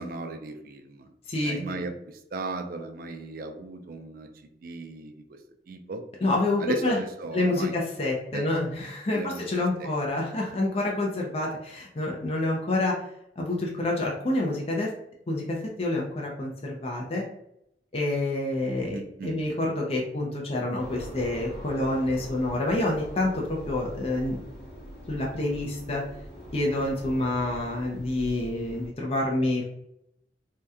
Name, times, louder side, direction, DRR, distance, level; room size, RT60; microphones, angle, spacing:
voice 1, 0.0-1.1 1.4-5.4 5.7-6.0 6.6-7.7 8.3-8.5 9.1-9.9 18.9-19.4, right 3 dB, 55° right, 5 dB, 0.4 m, -36 dB
voice 2, 1.3-1.6 6.2-7.0 7.3-13.0 13.4-14.9 15.3-17.2 17.9-24.4 25.1-26.0 26.5-29.6, left 2 dB, 35° left, -1 dB, 0.5 m, -28 dB
sound 1, 20.8-28.9, equal, 60° left, 1.1 m, -42 dB
2.7 x 2.2 x 3.5 m, 0.77 s
head